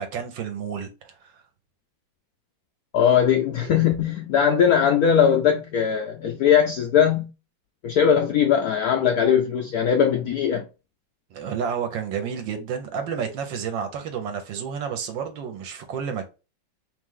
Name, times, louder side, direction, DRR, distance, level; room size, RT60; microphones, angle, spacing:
voice 1, 0.0-1.4 11.3-16.3, right 7 dB, 75° right, 1.5 m, -30 dB
voice 2, 2.9-7.3 7.8-10.6, left 8 dB, 80° left, 0.8 m, -20 dB
3.3 x 3.2 x 3.7 m
omnidirectional pair, 2.2 m